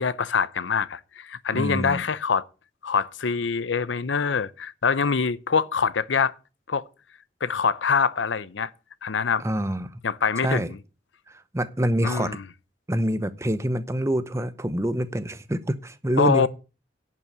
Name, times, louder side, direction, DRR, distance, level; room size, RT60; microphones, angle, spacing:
voice 1, 0.0-2.4 2.8-6.3 6.7-6.8 7.4-8.7 9.0-9.4 10.0-10.8 12.0-12.4 16.2-16.5, left 5 dB, 85° left, 0.7 m, -24 dB
voice 2, 1.5-2.0 9.4-10.0 10.4-10.7 11.3-12.4 12.9-16.5, right 1 dB, 15° right, 0.7 m, -26 dB
11.0 x 6.0 x 7.8 m
head